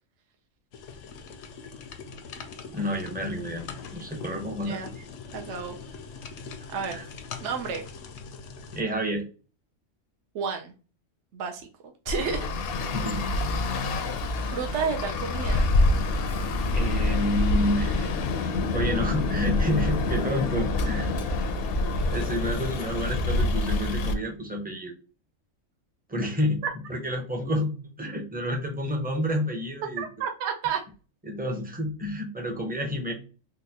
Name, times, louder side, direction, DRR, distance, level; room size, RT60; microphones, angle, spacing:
sound 1, 0.7-8.8, left 5 dB, 85° left, 1.0 m, -42 dB
voice 1, 2.7-5.0 6.9-7.0 8.7-9.2 12.9-13.2 16.7-18.1 18.7-21.3 22.1-24.9 26.1-26.6 26.9-30.0 31.2-33.1, left 1 dB, 10° right, 2 dB, 0.4 m, -29 dB
voice 2, 5.3-5.8 6.7-7.0 7.4-7.8 10.3-10.7 11.3-11.7 12.0-12.4 14.5-15.6 30.0-30.8, right 6 dB, 70° right, 3 dB, 0.9 m, -31 dB
Traffic noise roadway noise, 12.1-24.1, left 2 dB, 65° left, 0.6 m, -26 dB
3.9 x 2.2 x 2.7 m, 0.35 s
omnidirectional pair, 1.3 m